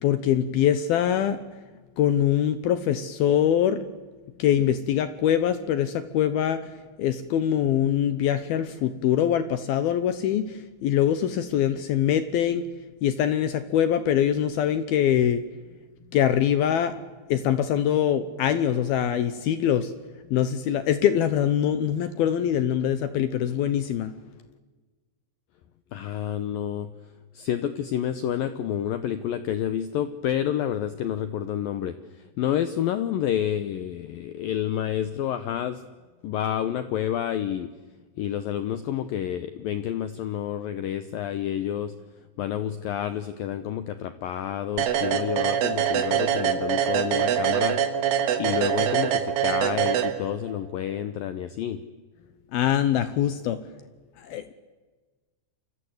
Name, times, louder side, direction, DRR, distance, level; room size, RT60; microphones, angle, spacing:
voice 1, 0.0-1.4 2.0-3.8 4.4-6.7 7.0-12.7 13.0-15.4 16.1-17.0 17.3-19.9 20.3-24.1 52.5-53.6 54.2-54.5, left 10 dB, 70° left, 12 dB, 2.4 m, -23 dB
voice 2, 25.9-26.9 27.3-35.8 36.2-37.7 38.2-41.9 42.4-48.0 48.4-51.8, left 10 dB, 85° left, 11 dB, 2.0 m, -29 dB
sound 1, 44.8-50.6, right 9 dB, 90° right, 4.2 m, -24 dB
29.5 x 25.0 x 8.0 m, 1.3 s
omnidirectional pair, 5.5 m